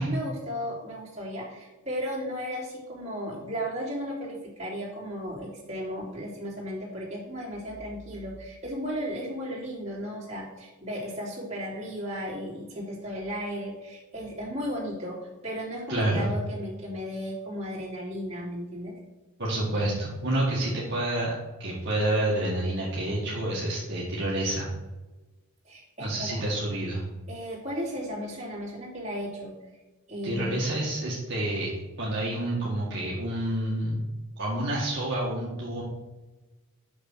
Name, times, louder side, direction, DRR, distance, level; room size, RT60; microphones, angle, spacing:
voice 1, 0.0-19.0 25.6-26.4 27.3-29.5 30.1-30.6, equal, 30° right, -5 dB, 3.0 m, -35 dB
voice 2, 15.9-16.3 19.4-21.3 21.6-24.7 26.0-27.0 30.2-31.7 32.0-34.0 34.4-35.8, right 1 dB, 50° right, -5 dB, 1.8 m, -28 dB
6.5 x 6.3 x 6.2 m, 1.1 s
head